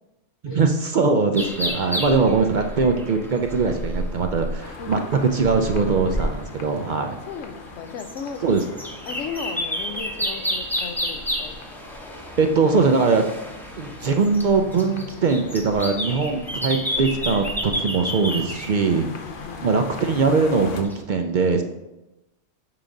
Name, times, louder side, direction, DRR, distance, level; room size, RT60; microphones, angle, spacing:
voice 1, 0.4-7.2 8.4-8.6 12.4-13.2 13.8-19.1 19.6-21.6, right 4 dB, 55° right, 5 dB, 0.5 m, -21 dB
sound 1, 1.3-19.4 19.9-20.0 20.8-20.9, equal, ahead, 0.7 m, -31 dB
sound 2, 4.6-20.8, left 4 dB, 50° left, 0.8 m, -41 dB
voice 2, 4.8-5.3 7.1-8.4 9.0-11.6 19.2-19.6, left 6 dB, 85° left, 9 dB, 1.0 m, -36 dB
7.5 x 4.9 x 3.8 m, 1.0 s
omnidirectional pair, 1.2 m